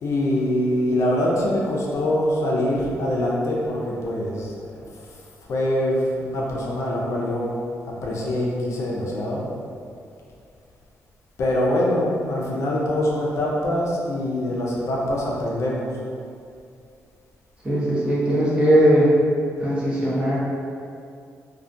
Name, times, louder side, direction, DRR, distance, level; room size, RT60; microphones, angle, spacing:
voice 1, 0.0-4.5 5.5-7.5 8.0-9.4 11.4-15.9, left 1 dB, 60° left, -4 dB, 0.4 m, -24 dB
voice 2, 17.6-19.1 19.6-20.4, equal, 20° right, -8 dB, 0.8 m, -19 dB
2.3 x 2.1 x 2.5 m, 2.4 s
cardioid pair, 100°, 6 cm